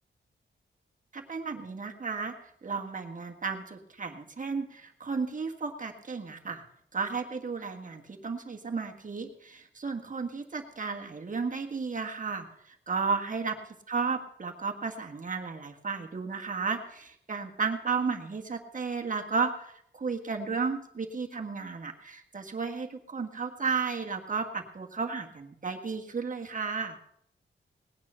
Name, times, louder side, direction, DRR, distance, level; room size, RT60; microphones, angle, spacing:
voice 1, 1.1-2.3 2.6-6.6 6.9-13.6 13.9-27.0, right 5 dB, 40° right, 3 dB, 1.7 m, -33 dB
19.0 x 9.4 x 5.6 m, 0.72 s
wide cardioid pair, 115°, 20 cm